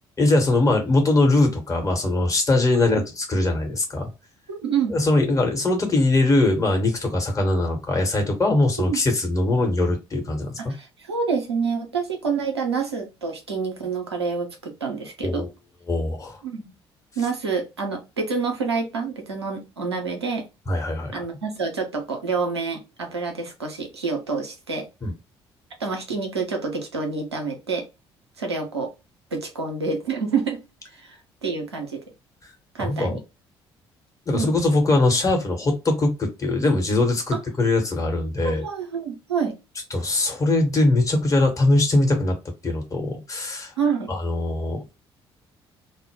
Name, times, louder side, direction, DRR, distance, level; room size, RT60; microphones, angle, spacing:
voice 1, 0.2-4.1 4.9-10.7 15.2-15.5 15.9-16.4 20.7-21.2 25.0-25.1 32.8-33.2 34.3-38.6 39.9-42.4 42.6-43.7 44.1-44.9, left 2 dB, 25° left, 3 dB, 1.0 m, -21 dB
voice 2, 4.5-5.0 8.9-9.0 10.6-15.4 16.4-16.7 17.2-20.5 21.1-24.9 25.8-27.9 28.4-28.9 29.3-30.6 31.0-32.0 32.7-33.2 34.3-34.5 37.3-37.4 38.4-39.5 43.8-44.1, right 5 dB, 85° right, 2 dB, 0.5 m, -27 dB
2.1 x 2.0 x 3.3 m, 0.25 s
figure-of-eight pair, 50°, 13 cm